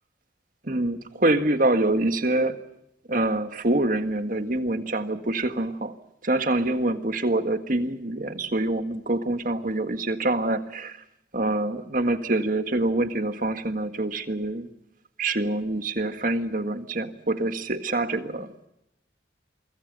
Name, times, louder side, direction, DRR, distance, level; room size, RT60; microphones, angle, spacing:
voice 1, 0.6-2.6 3.1-5.9 6.2-11.0 11.3-14.7 15.2-18.7, right 2 dB, 45° right, 8 dB, 1.7 m, -25 dB
28.5 x 24.5 x 5.4 m, 0.83 s
head